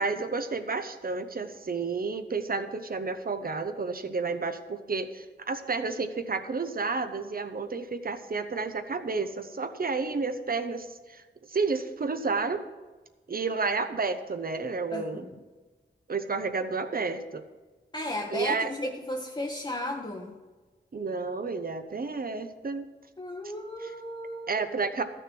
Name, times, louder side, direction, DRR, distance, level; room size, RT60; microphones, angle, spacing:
voice 1, 0.0-11.2 11.5-12.6 13.3-15.3 16.1-17.4 18.3-18.7 20.9-22.9 23.8-23.9 24.5-25.0, right 4 dB, 50° right, 9 dB, 0.9 m, -31 dB
voice 2, 14.9-15.4 17.9-20.3 23.2-24.6, left 1 dB, 25° left, 0 dB, 1.0 m, -35 dB
13.5 x 6.4 x 6.1 m, 1.3 s
wide cardioid pair, 70°, 19 cm